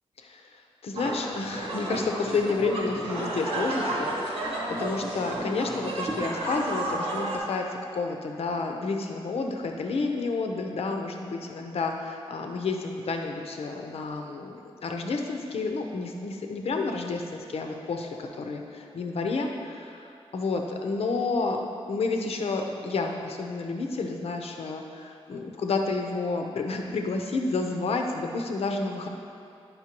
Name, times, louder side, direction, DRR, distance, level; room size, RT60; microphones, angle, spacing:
voice 1, 0.2-29.1, left 3 dB, 75° left, 3 dB, 0.7 m, -30 dB
sound 1, 1.0-7.4, right 1 dB, 70° right, 1.3 m, -32 dB
9.4 x 5.5 x 2.9 m, 2.5 s
wide cardioid pair, 95°, 10 cm